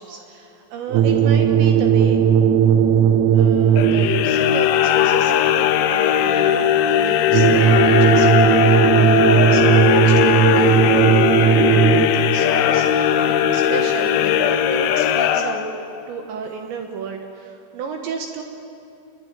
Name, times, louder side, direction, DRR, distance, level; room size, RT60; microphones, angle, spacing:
voice 1, 0.0-2.2 3.3-15.7 16.1-18.4, right 5 dB, 70° right, 3 dB, 3.4 m, -32 dB
sound 1, 0.9-4.4 7.3-12.4, right 8 dB, 85° right, 3.5 m, -16 dB
sound 2, 3.7-16.0, left 10 dB, 75° left, 2.8 m, -18 dB
26.5 x 22.5 x 9.1 m, 2.7 s
omnidirectional pair, 5.8 m